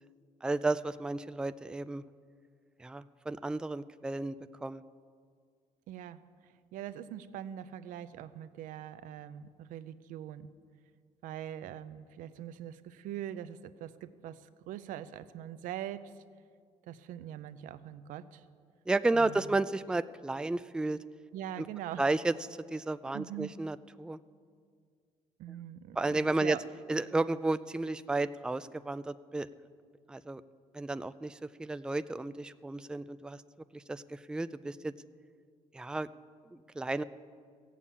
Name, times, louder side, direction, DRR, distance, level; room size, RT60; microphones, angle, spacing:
voice 1, 0.4-2.0 2.8-4.3 4.6-4.8 18.9-21.0 21.6-21.7 22.0-22.3 22.7-24.2 26.0-26.6 26.9-29.5 30.1-30.4 30.7-33.4 33.7-34.9 35.7-36.1 36.5-37.0, right 2 dB, 5° right, 13 dB, 0.3 m, -32 dB
voice 2, 5.9-10.5 11.2-16.2 16.8-18.4 19.1-19.6 21.3-22.0 23.1-23.6 25.4-26.6, right 11 dB, 85° right, 13 dB, 0.6 m, -43 dB
16.0 x 7.3 x 8.4 m, 2.1 s
cardioid pair, 100°, 13 cm